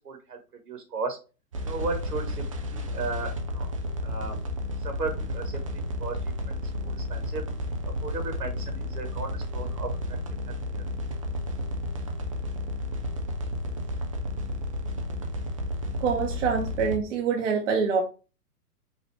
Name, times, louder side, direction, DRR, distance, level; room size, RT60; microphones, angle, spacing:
voice 1, 0.0-0.4 0.7-1.2 1.6-3.7 4.0-4.4 4.8-6.2 6.8-7.4 8.0-10.2 10.5-10.8, right 4 dB, 75° right, 4 dB, 2.0 m, -35 dB
sound 1, 1.5-17.0, left 1 dB, 25° right, 0.4 m, -32 dB
voice 2, 16.0-18.0, right 6 dB, 50° right, 1 dB, 1.0 m, -25 dB
5.5 x 2.6 x 3.3 m, 0.32 s
figure-of-eight pair, 120°, 48 cm